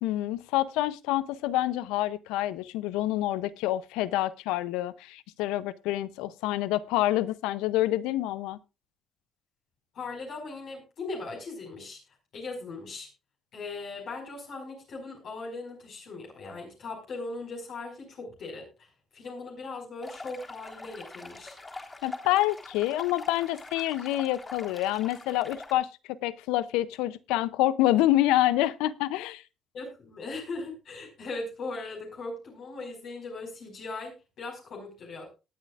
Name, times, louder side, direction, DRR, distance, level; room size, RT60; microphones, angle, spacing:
voice 1, 0.0-8.6 22.0-29.4, left 15 dB, 90° left, 0.5 m, -27 dB
voice 2, 9.9-12.0 12.3-13.1 13.5-18.9 19.1-21.6 29.7-35.3, left 3 dB, 65° left, 5.0 m, -39 dB
sound 1, 20.0-25.7, left 2 dB, 25° left, 3.6 m, -44 dB
19.0 x 9.2 x 2.4 m
supercardioid pair, 70°, 0 cm